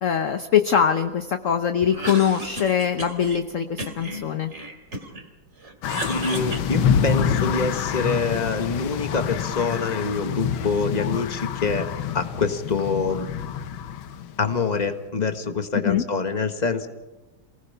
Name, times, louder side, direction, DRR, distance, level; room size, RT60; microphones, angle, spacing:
voice 1, 0.0-4.5 15.8-16.0, left 8 dB, 50° left, 8 dB, 1.1 m, -22 dB
Cough, 1.8-3.4 3.8-5.3 5.6-7.5, right 1 dB, 35° right, 3.1 m, -34 dB
sound 1, 5.8-14.9, left 7 dB, 85° left, 1.8 m, -27 dB
voice 2, 6.1-11.9 12.1-13.3 14.4-16.9, left 4 dB, 25° left, 7 dB, 1.5 m, -25 dB
28.0 x 19.0 x 5.6 m, 1.1 s
omnidirectional pair, 2.1 m